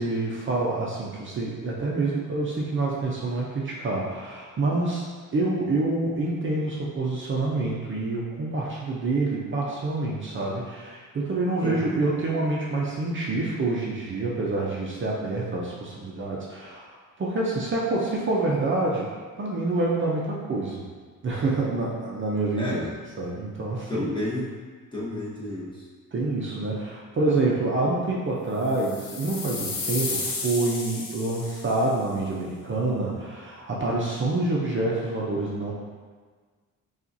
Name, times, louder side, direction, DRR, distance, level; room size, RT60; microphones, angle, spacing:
voice 1, 0.0-5.0 5.3-16.9 17.2-19.1 19.4-20.8 21.2-22.8 23.2-24.0 26.1-35.7, right 2 dB, 35° right, -4 dB, 0.6 m, -27 dB
voice 2, 22.6-22.9 23.9-24.6 24.9-25.8, left 1 dB, 15° left, -7 dB, 1.0 m, -30 dB
sound 1, 28.7-31.9, left 4 dB, 75° left, 0.7 m, -33 dB
5.6 x 2.4 x 2.7 m, 1.5 s
cardioid pair, 125°, 33 cm